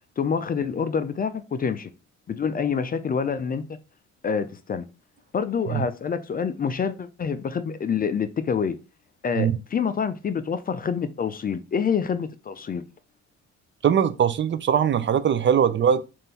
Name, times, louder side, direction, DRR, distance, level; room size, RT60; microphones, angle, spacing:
voice 1, 0.2-1.9 2.3-3.8 4.2-4.9 5.3-8.8 9.2-12.8, left 6 dB, 30° left, 0.4 m, -27 dB
voice 2, 13.8-16.0, right 8 dB, 40° right, 0.4 m, -21 dB
3.7 x 2.6 x 4.0 m
cardioid pair, 90°, 30 cm